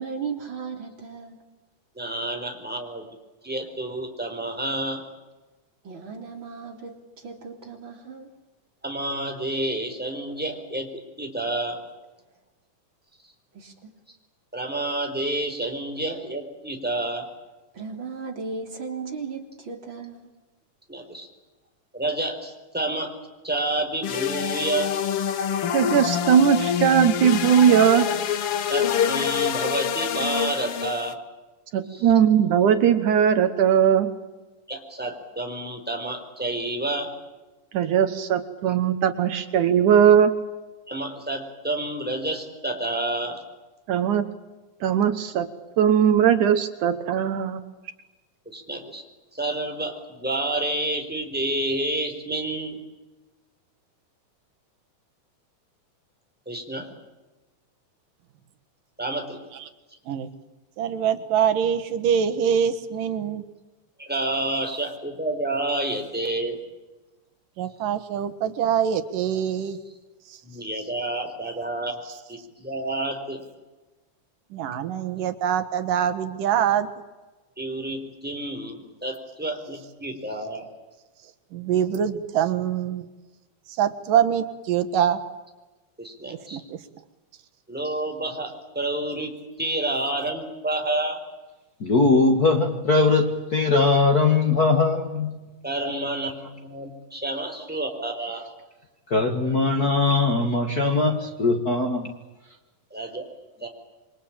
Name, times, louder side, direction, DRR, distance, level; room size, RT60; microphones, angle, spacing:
voice 1, 0.0-1.4 5.8-8.3 13.5-13.9 17.7-20.3, right 5 dB, 35° right, 3 dB, 3.9 m, -36 dB
voice 2, 2.0-3.2 3.4-5.0 8.8-10.9 11.2-11.8 14.5-17.3 20.9-21.3 21.9-23.1 23.4-24.9 28.7-31.2 31.9-32.1 34.7-37.1 38.7-38.8 40.9-43.4 48.5-49.0 49.3-52.8 56.5-56.9 59.0-59.4 64.0-66.6 70.4-72.0 72.3-73.4 77.6-80.7 86.0-86.6 87.7-91.2 95.6-98.4 102.9-103.3 103.6-103.7, right 1 dB, 5° right, 3 dB, 4.2 m, -29 dB
sound 1, 24.0-31.1, left 8 dB, 55° left, 1.8 m, -26 dB
voice 3, 25.7-28.1 31.7-34.1 37.7-40.3 43.9-44.2 44.8-45.5 45.8-47.6, right 8 dB, 70° right, 10 dB, 2.7 m, -19 dB
voice 4, 60.8-63.4 67.6-69.8 74.5-76.9 81.5-83.1 83.8-85.2 86.5-86.8, right 9 dB, 85° right, 9 dB, 3.2 m, -24 dB
voice 5, 91.8-95.4 95.8-96.1 99.1-102.1, left 3 dB, 35° left, 3 dB, 1.8 m, -21 dB
28.0 x 24.0 x 8.9 m, 1.2 s
omnidirectional pair, 3.7 m